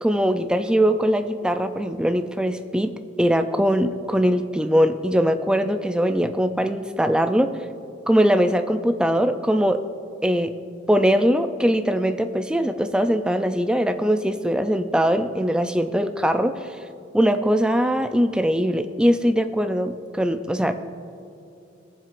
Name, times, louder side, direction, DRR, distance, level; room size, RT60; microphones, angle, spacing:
voice 1, 0.0-2.9 3.2-7.5 8.1-9.8 10.2-10.5 10.9-16.7 17.1-20.7, equal, 5° right, 7 dB, 0.3 m, -21 dB
21.5 x 7.4 x 2.5 m, 2.6 s
head